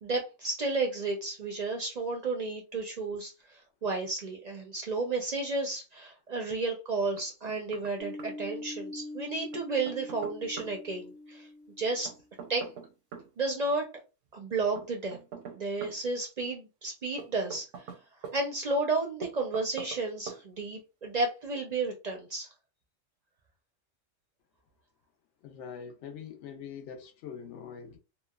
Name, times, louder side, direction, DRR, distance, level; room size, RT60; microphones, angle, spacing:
voice 1, 0.0-11.5 11.8-12.1 12.5-12.7 13.4-13.9 14.3-15.2 15.5-17.7 18.3-22.5, right 3 dB, 55° right, 0.5 m, -32 dB
Knock, 7.2-7.9 8.2-8.3 9.5-10.7 12.1-13.3 14.8-16.0 17.2-18.4 19.2-20.0 20.3-20.4, right 6 dB, 85° right, 0.9 m, -43 dB
sound 1, 8.0-12.2, left 2 dB, 20° left, 0.7 m, -43 dB
voice 2, 25.4-28.0, left 7 dB, 75° left, 0.9 m, -43 dB
3.0 x 2.1 x 2.2 m
omnidirectional pair, 1.3 m